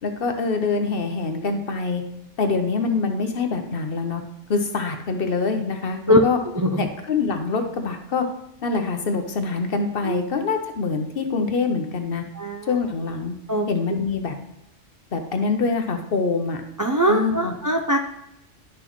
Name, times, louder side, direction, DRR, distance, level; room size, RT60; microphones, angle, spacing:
voice 1, 0.0-2.0 2.4-4.2 4.5-6.4 6.8-8.2 8.6-12.2 12.7-13.3 13.7-14.4 15.1-16.6 17.1-17.5, left 4 dB, 55° left, 6 dB, 1.0 m, -25 dB
voice 2, 12.4-12.8 13.5-13.7 16.8-18.0, equal, 30° right, 3 dB, 0.3 m, -21 dB
11.0 x 6.0 x 3.1 m, 0.84 s
omnidirectional pair, 1.2 m